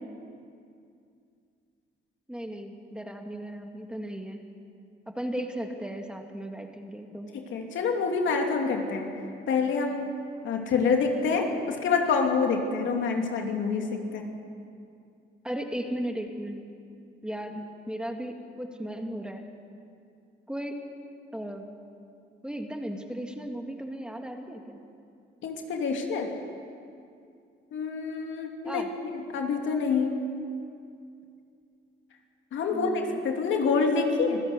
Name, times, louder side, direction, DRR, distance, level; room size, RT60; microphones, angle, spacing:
voice 1, 2.3-4.4 5.1-7.3 15.4-16.7 17.2-19.4 20.5-20.7 21.3-21.6 22.4-24.8 28.6-28.9 32.7-33.2, right 1 dB, 5° right, 3 dB, 2.3 m, -36 dB
voice 2, 7.3-9.1 9.5-10.1 10.4-14.3 25.4-26.4 27.7-30.2 32.5-34.4, left 5 dB, 75° left, 2 dB, 2.9 m, -27 dB
25.5 x 15.5 x 8.2 m, 2.4 s
cardioid pair, 90°, 20 cm